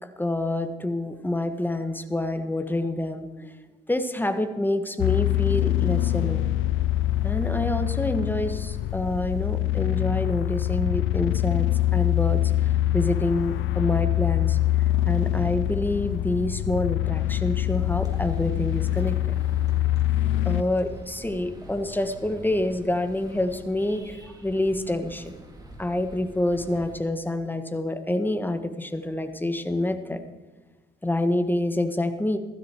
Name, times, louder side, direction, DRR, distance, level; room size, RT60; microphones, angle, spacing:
voice 1, 0.0-3.5 3.9-6.5 7.2-11.7 11.9-14.6 15.0-19.2 20.4-25.3 25.8-30.2 31.0-32.4, left 1 dB, 10° left, 8 dB, 1.5 m, -27 dB
sound 1, 5.0-20.6, left 14 dB, 85° left, 0.5 m, -24 dB
sound 2, 18.0-27.0, equal, 20° right, 3.7 m, -45 dB
16.5 x 15.0 x 4.6 m, 1.2 s
cardioid pair, 90°, 20 cm